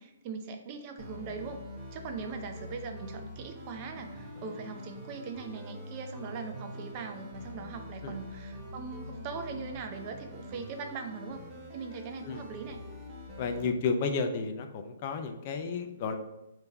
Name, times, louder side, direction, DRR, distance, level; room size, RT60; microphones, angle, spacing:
voice 1, 0.0-1.6 1.9-11.5 11.7-12.8, right 5 dB, 35° right, 5 dB, 0.5 m, -40 dB
sound 1, 1.0-13.7, left 1 dB, 10° right, 1.0 m, -44 dB
voice 2, 13.4-16.2, left 4 dB, 40° left, 6 dB, 0.4 m, -32 dB
3.6 x 2.7 x 4.6 m, 0.91 s
hypercardioid pair, 145°, 0 cm